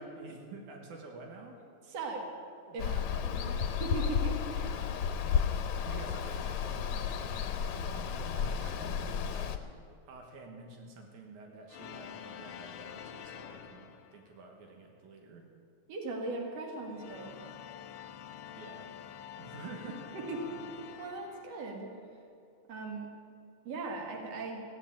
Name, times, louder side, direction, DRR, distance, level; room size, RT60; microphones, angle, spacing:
voice 1, 0.0-1.6 2.7-3.7 4.6-5.1 5.9-9.6 10.1-15.5 18.5-18.9 19.4-20.6, right 3 dB, 85° right, 1 dB, 2.9 m, -49 dB
voice 2, 1.9-2.3 2.7-2.9 3.2-3.5 3.8-4.7 15.9-17.3 20.1-20.5 21.0-21.9 22.7-23.1 23.6-24.6, right 3 dB, 60° right, 1 dB, 2.9 m, -38 dB
Water, 2.8-9.6, left 7 dB, 85° left, 2.3 m, -32 dB
sound 1, 11.7-14.5 16.8-22.0, left 9 dB, 70° left, 1.4 m, -47 dB
15.5 x 8.9 x 8.9 m, 2.3 s
omnidirectional pair, 3.3 m